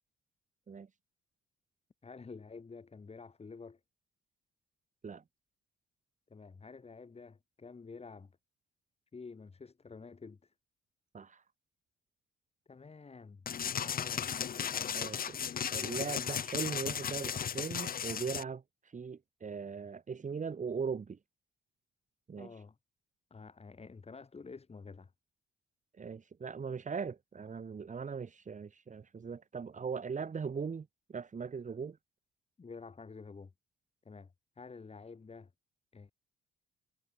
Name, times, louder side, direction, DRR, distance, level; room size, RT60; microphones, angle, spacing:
voice 1, 2.0-3.8 6.3-8.3 9.1-10.5 12.7-13.5 13.8-14.4 22.4-22.8 23.3-25.1 32.6-33.5 34.0-35.5 35.9-36.1, left 4 dB, 30° left, 6.8 m, -49 dB
sound 1, 13.5-18.4, left 8 dB, 45° left, 1.1 m, -35 dB
voice 2, 14.9-15.4 15.7-21.2 22.3-22.6 26.0-32.0, right 5 dB, 40° right, 4.8 m, -39 dB
cardioid pair, 90°, 20 cm